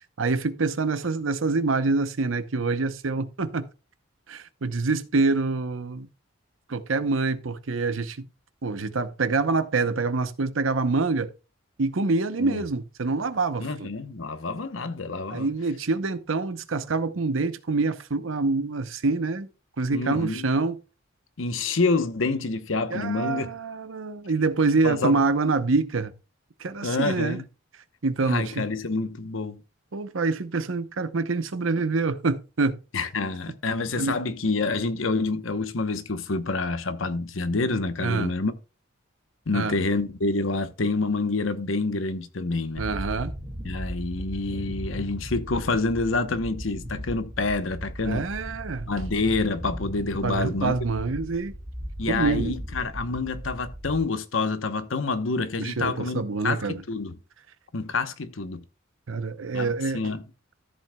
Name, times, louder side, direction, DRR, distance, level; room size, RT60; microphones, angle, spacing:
voice 1, 0.2-3.7 4.3-6.1 6.7-8.3 8.6-11.3 11.8-13.9 15.3-19.5 19.8-20.8 22.9-26.1 26.6-27.4 28.0-28.6 29.9-32.8 34.0-34.2 38.0-38.3 39.5-39.8 42.8-43.3 48.0-48.9 50.2-51.5 52.1-52.5 55.6-56.8 59.1-60.0, right 3 dB, 80° right, 0.8 m, -26 dB
voice 2, 13.6-15.5 19.9-20.5 21.4-23.5 24.8-25.2 26.8-27.4 28.2-29.6 32.9-38.5 39.5-42.8 43.6-48.2 48.9-50.7 52.0-57.2 57.7-58.6 59.5-59.7 59.9-60.2, left 3 dB, 80° left, 1.0 m, -27 dB
sound 1, 42.8-54.0, equal, 35° right, 1.9 m, -37 dB
14.0 x 7.6 x 2.3 m
head